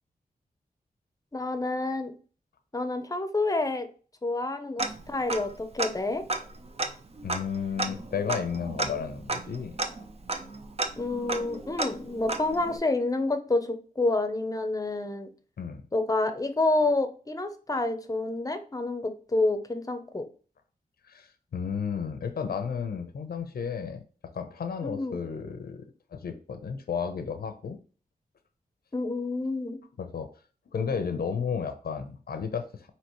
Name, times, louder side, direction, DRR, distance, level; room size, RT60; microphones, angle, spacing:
voice 1, 1.3-2.1 2.7-3.9 4.2-6.2 11.0-15.3 15.9-20.3 24.8-25.2 28.9-29.8, left 2 dB, 20° left, 8 dB, 0.7 m, -28 dB
Tick-tock, 4.8-5.5 5.8-5.9 6.3-12.8, right 2 dB, 40° right, 0.6 m, -33 dB
voice 2, 7.2-9.8 15.6-15.8 21.0-24.0 24.3-25.8 26.1-27.8 30.0-30.3 30.7-32.9, left 6 dB, 80° left, 8 dB, 0.7 m, -33 dB
5.6 x 2.9 x 3.0 m, 0.39 s
wide cardioid pair, 90°, 16 cm